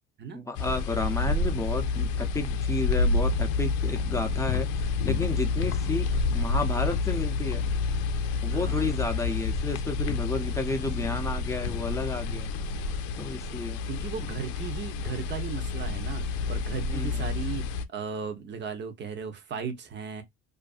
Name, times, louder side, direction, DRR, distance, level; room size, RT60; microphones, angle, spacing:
voice 1, 0.3-7.6 8.4-12.5 13.2-13.8 16.9-17.2, left 2 dB, 10° left, 0.6 m, -32 dB
sound 1, 0.5-17.8, left 4 dB, 80° left, 0.5 m, -29 dB
voice 2, 3.9-4.4 5.8-6.1 8.5-9.2 10.7-11.2 13.9-20.2, right 6 dB, 40° right, 0.8 m, -37 dB
2.5 x 2.5 x 2.4 m
cardioid pair, 115°, 29 cm